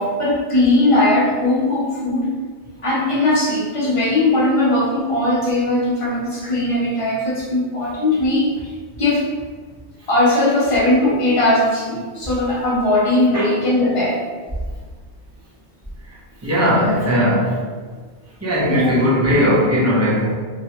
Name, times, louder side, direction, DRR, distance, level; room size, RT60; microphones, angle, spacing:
voice 1, 0.0-2.3 2.8-8.5 9.0-9.3 10.1-14.2 18.7-19.1, left 1 dB, 35° left, -5 dB, 0.6 m, -18 dB
voice 2, 16.4-17.6 18.4-20.3, equal, 20° right, -6 dB, 0.5 m, -18 dB
2.8 x 2.2 x 2.8 m, 1.5 s
omnidirectional pair, 1.1 m